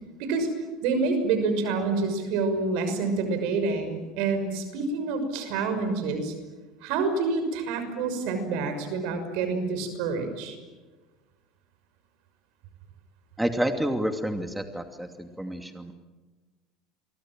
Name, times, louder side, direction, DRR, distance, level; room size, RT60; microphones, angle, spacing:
voice 1, 0.8-6.3 6.8-10.6, right 4 dB, 70° right, 8 dB, 6.2 m, -27 dB
voice 2, 13.4-15.9, right 1 dB, 5° right, 6 dB, 2.6 m, -29 dB
29.0 x 24.0 x 7.6 m, 1.3 s
hypercardioid pair, 85°, 0 cm